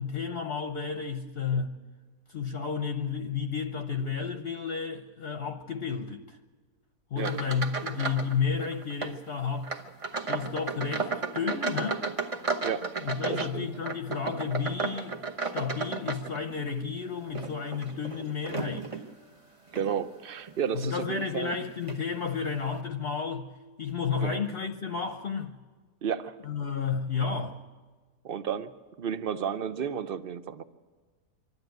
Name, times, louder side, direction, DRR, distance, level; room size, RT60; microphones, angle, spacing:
voice 1, 0.0-1.7 2.3-6.4 7.1-9.7 10.3-12.1 13.0-18.9 20.7-23.5 23.8-25.6 26.4-27.6, left 6 dB, 45° left, 0.9 m, -32 dB
sound 1, 7.2-8.3 8.6-9.2 9.6-16.7 17.2-19.1 19.7-19.9 20.5-20.6 21.5-21.6 21.9-22.0, right 4 dB, 25° right, 0.8 m, -34 dB
voice 2, 12.6-13.0 13.3-13.7 19.7-21.5 24.2-24.4 26.0-26.4 28.2-28.7 29.0-30.6, right 8 dB, 65° right, 0.5 m, -32 dB
25.0 x 12.5 x 9.2 m
omnidirectional pair, 1.9 m